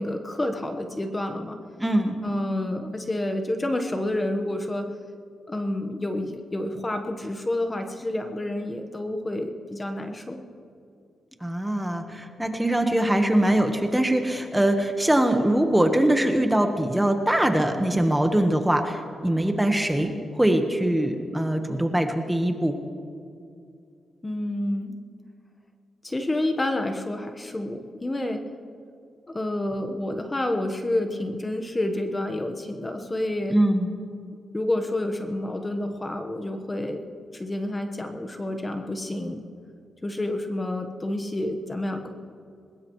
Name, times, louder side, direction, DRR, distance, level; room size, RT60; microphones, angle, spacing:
voice 1, 0.0-1.6 2.2-4.9 5.5-10.4 24.2-24.9 26.0-28.4 29.3-33.6 34.5-37.0 37.3-39.4 40.0-42.1, left 1 dB, 20° left, 5 dB, 1.2 m, -29 dB
voice 2, 1.8-2.2 11.4-22.7 33.5-33.9, right 1 dB, 5° right, 5 dB, 1.2 m, -22 dB
21.5 x 20.5 x 3.1 m, 2.4 s
cardioid pair, 110°, 0 cm